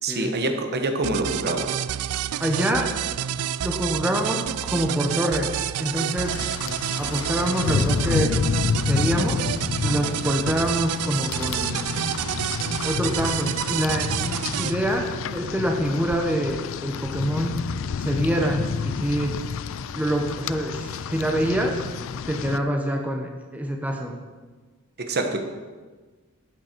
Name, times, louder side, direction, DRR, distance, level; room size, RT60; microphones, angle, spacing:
voice 1, 0.0-1.8 25.0-25.4, right 2 dB, 50° right, 5 dB, 1.1 m, -26 dB
sound 1, 1.0-14.7, right 11 dB, 90° right, 0.4 m, -29 dB
voice 2, 2.4-3.0 3.6-6.4 7.0-8.4 8.9-9.5 9.8-11.9 12.8-17.7 18.0-19.4 19.9-21.8 22.3-24.1, equal, 5° right, 2 dB, 0.9 m, -26 dB
Rain, 6.2-22.6, left 6 dB, 65° left, 0.4 m, -29 dB
11.5 x 8.9 x 4.5 m, 1.4 s
head